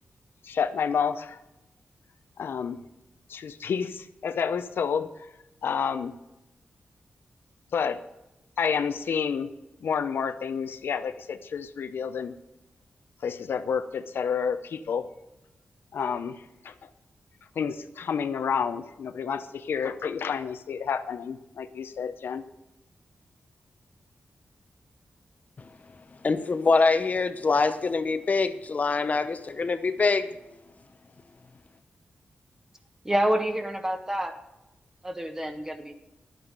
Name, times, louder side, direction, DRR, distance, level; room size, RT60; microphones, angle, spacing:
voice 1, 0.4-1.4 2.4-2.8 3.3-5.1 5.6-6.1 7.7-8.0 8.6-9.5 9.8-12.3 13.2-15.0 15.9-16.9 17.6-22.5, left 6 dB, 85° left, 10 dB, 0.7 m, -29 dB
voice 2, 26.2-30.3, left 4 dB, 45° left, 10 dB, 0.7 m, -24 dB
voice 3, 33.0-34.3 35.0-35.7, right 1 dB, 15° right, 6 dB, 1.4 m, -27 dB
11.0 x 9.0 x 5.4 m, 0.95 s
wide cardioid pair, 100°, 4 cm